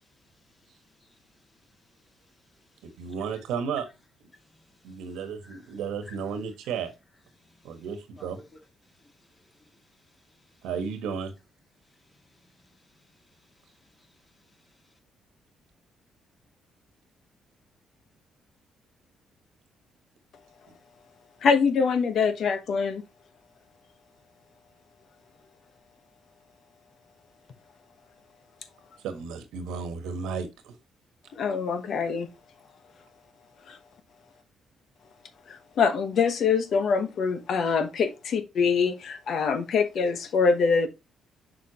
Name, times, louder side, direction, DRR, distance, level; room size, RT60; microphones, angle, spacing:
voice 1, 2.8-3.9 4.8-6.9 7.6-8.4 10.6-11.3 20.7-20.8 29.0-30.7, right 6 dB, 90° right, 1.3 m, -33 dB
voice 2, 4.3-5.0 5.4-5.7 6.0-6.2 7.4-7.8 8.2-8.4 8.9-9.7 12.3-12.5 13.0-13.2 14.0-14.1, left 2 dB, 25° left, 1.9 m, -56 dB
voice 3, 21.4-23.0 31.3-32.3 33.7-33.8 35.5-40.9, left 5 dB, 65° left, 1.0 m, -24 dB
6.5 x 5.7 x 2.9 m
cardioid pair, 90°, 0 cm